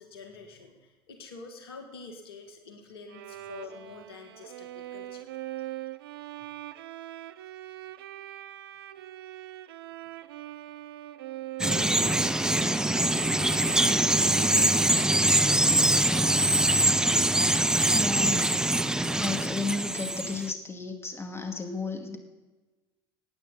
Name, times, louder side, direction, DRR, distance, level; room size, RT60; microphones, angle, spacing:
voice 1, 0.0-5.3, left 4 dB, 80° left, 5 dB, 1.6 m, -46 dB
Bowed string instrument, 3.1-14.9, right 14 dB, 80° right, 0.5 m, -42 dB
Bird vocalization bird call bird song, 11.6-20.5, right 1 dB, 5° right, 0.6 m, -23 dB
voice 2, 17.9-18.6 18.9-22.2, left 3 dB, 20° left, 4 dB, 2.3 m, -33 dB
16.5 x 9.2 x 3.9 m, 1.2 s
hypercardioid pair, 70°, 13 cm